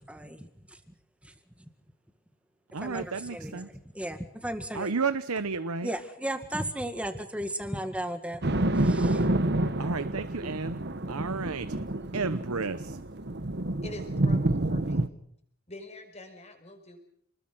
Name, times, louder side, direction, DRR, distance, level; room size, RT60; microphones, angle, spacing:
voice 1, 0.1-0.5 1.2-1.3 2.8-4.9 5.8-8.4 8.8-9.2, right 1 dB, 5° right, 8 dB, 1.9 m, -35 dB
voice 2, 2.7-3.7 4.7-5.9 9.8-10.8 11.1-11.8 12.1-13.0, right 4 dB, 80° right, 12 dB, 1.0 m, -32 dB
sound 1, 8.4-15.1, right 1 dB, 50° right, 1.1 m, -28 dB
voice 3, 13.8-15.1 15.7-17.0, left 1 dB, 30° left, 5 dB, 5.7 m, -45 dB
29.5 x 20.5 x 6.2 m, 0.68 s
head